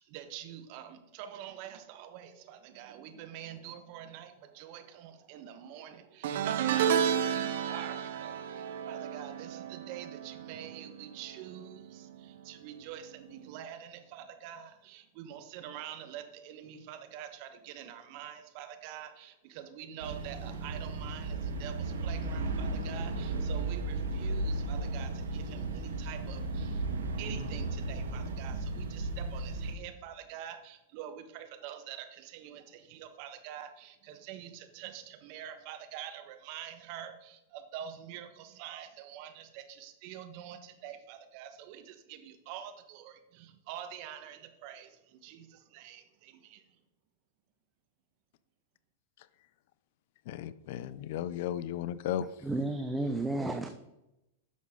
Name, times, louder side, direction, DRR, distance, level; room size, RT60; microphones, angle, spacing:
voice 1, 0.0-46.8, right 10 dB, 50° right, 8 dB, 1.2 m, -46 dB
sound 1, 6.2-11.6 11.9-12.3 13.5-13.6, right 8 dB, 70° right, 0.8 m, -32 dB
sound 2, 20.0-29.7, right 2 dB, 85° right, 1.5 m, -35 dB
voice 2, 50.3-52.5, left 11 dB, 60° left, 16 dB, 0.4 m, -35 dB
voice 3, 52.4-53.7, right 2 dB, 10° right, 7 dB, 0.6 m, -32 dB
10.5 x 6.3 x 3.7 m, 0.92 s
hypercardioid pair, 115°, 0 cm